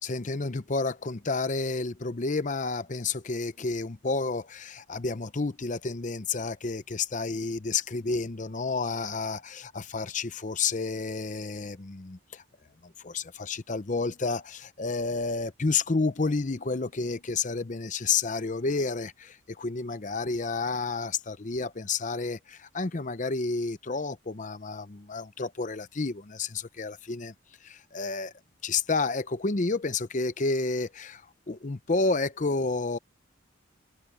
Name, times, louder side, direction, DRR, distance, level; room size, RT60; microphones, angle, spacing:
voice 1, 0.0-12.4 12.8-27.3 27.6-28.3 28.6-33.0, left 4 dB, 40° left, 0.7 m, -30 dB
head